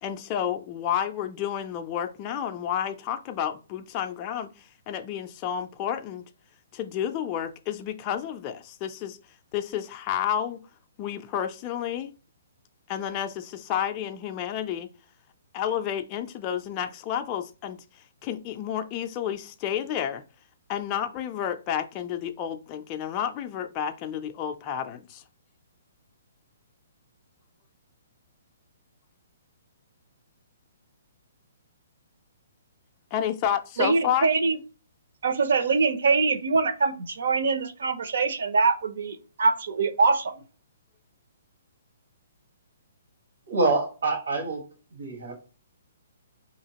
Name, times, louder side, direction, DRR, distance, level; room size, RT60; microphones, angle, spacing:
voice 1, 0.0-4.5 4.9-6.2 6.7-9.2 9.5-10.6 11.0-12.1 12.9-14.9 15.5-17.8 18.2-20.2 20.7-25.2 33.1-34.3, left 9 dB, 25° left, 0.3 m, -30 dB
voice 2, 33.8-34.6 35.2-40.3, right 4 dB, 70° right, 0.6 m, -23 dB
voice 3, 43.5-44.6 44.9-45.4, right 3 dB, 90° right, 1.4 m, -26 dB
4.7 x 2.8 x 2.8 m
hypercardioid pair, 160°, 0 cm